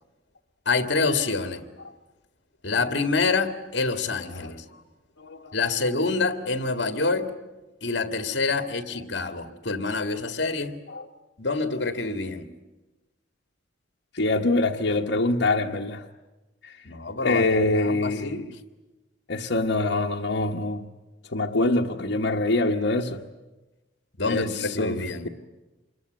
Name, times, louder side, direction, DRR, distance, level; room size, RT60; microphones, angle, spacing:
voice 1, 0.7-1.6 2.6-4.7 5.5-7.3 7.8-10.8 11.4-12.5 16.8-17.5 17.7-18.5 24.2-25.3, left 3 dB, 70° left, 2.0 m, -26 dB
voice 2, 5.2-5.5 10.9-11.1 14.1-16.1 16.6-16.9 17.2-18.4 19.3-20.9 21.3-23.2 24.3-25.3, left 2 dB, 85° left, 1.2 m, -25 dB
26.5 x 22.5 x 9.3 m
head